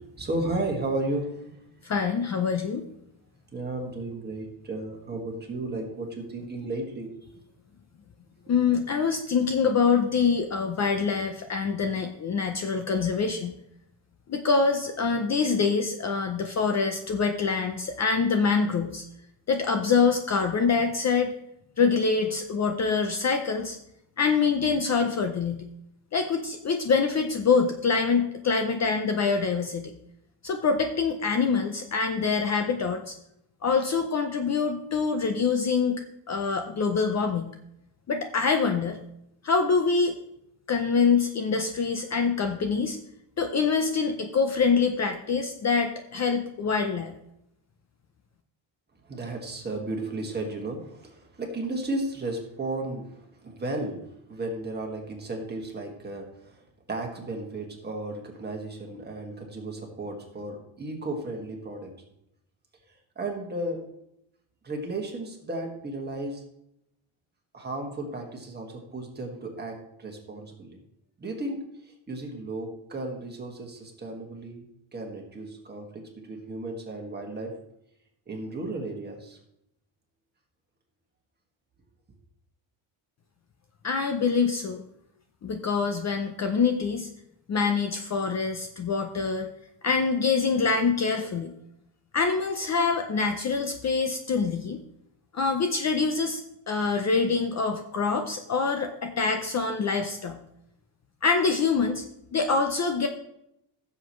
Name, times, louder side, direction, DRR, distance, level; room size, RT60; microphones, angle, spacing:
voice 1, 0.0-1.6 3.5-7.1 49.0-56.6 56.9-61.9 63.2-63.8 64.6-66.4 67.5-70.8 71.2-74.6 74.9-77.6 78.3-79.4, right 2 dB, 20° right, 1 dB, 1.8 m, -34 dB
voice 2, 1.8-2.8 8.5-13.6 14.3-19.0 19.5-21.3 21.8-23.8 24.2-25.6 26.1-29.9 30.4-33.1 33.6-37.5 38.1-39.0 39.4-40.1 40.7-43.0 43.4-47.1 83.8-84.8 85.4-87.1 87.5-89.5 89.8-91.5 92.1-94.8 95.3-96.4 96.7-100.4 101.2-102.0 102.3-103.1, left 5 dB, 35° left, 6 dB, 0.6 m, -25 dB
15.5 x 7.2 x 3.1 m, 0.79 s
cardioid pair, 165°, 48 cm